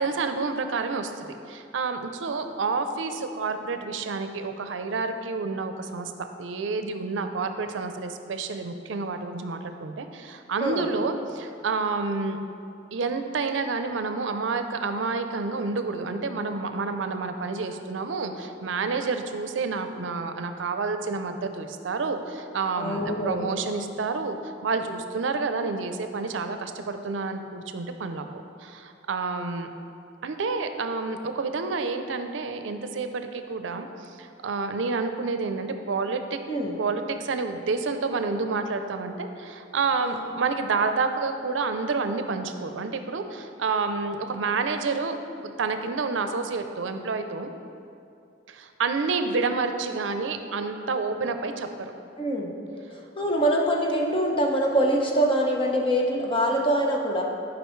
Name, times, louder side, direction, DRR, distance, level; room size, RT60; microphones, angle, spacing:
voice 1, 0.0-6.1 6.4-12.4 12.9-29.7 30.2-36.4 36.8-45.2 45.4-47.5 48.5-51.7, right 4 dB, 75° right, 8 dB, 0.5 m, -29 dB
voice 2, 22.8-23.5 36.5-36.8 40.0-40.2 52.2-52.5 52.9-57.2, right 1 dB, 30° left, 0 dB, 0.8 m, -24 dB
11.0 x 5.1 x 3.1 m, 2.6 s
head